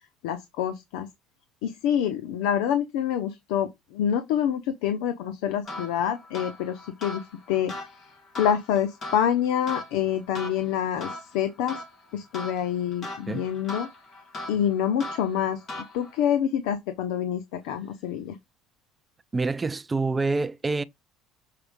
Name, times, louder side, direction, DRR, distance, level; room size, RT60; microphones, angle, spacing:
voice 1, 0.2-1.1 1.6-8.1 8.4-11.8 12.1-13.9 14.5-15.6 15.9-18.4, left 9 dB, 85° left, 0.8 m, -27 dB
sound 1, 5.6-16.3, left 2 dB, 25° left, 2.0 m, -40 dB
voice 2, 19.3-20.8, right 3 dB, 15° right, 0.3 m, -26 dB
6.8 x 4.4 x 3.6 m
cardioid pair, 165°, 0 cm